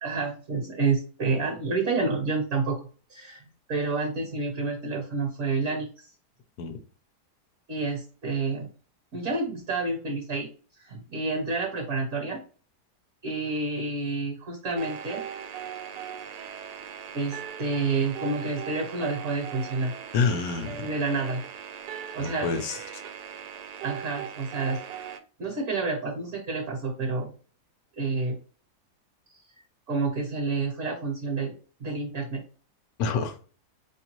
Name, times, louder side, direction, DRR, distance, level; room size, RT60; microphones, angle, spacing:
voice 1, 0.0-3.4 3.7-6.1 7.7-8.7 9.1-10.5 10.8-12.4 13.2-15.2 17.1-19.9 20.8-21.4 22.1-22.5 23.8-24.8 25.4-27.3 28.0-28.4 29.3-29.4 29.9-31.5 31.8-32.4, right 3 dB, 55° right, 2 dB, 1.2 m, -29 dB
sound 1, 14.8-25.2, right 8 dB, 85° right, 1.2 m, -39 dB
voice 2, 20.1-20.9 22.2-23.0 33.0-33.4, left 5 dB, 70° left, 8 dB, 1.1 m, -28 dB
4.5 x 2.9 x 3.0 m, 0.39 s
omnidirectional pair, 1.7 m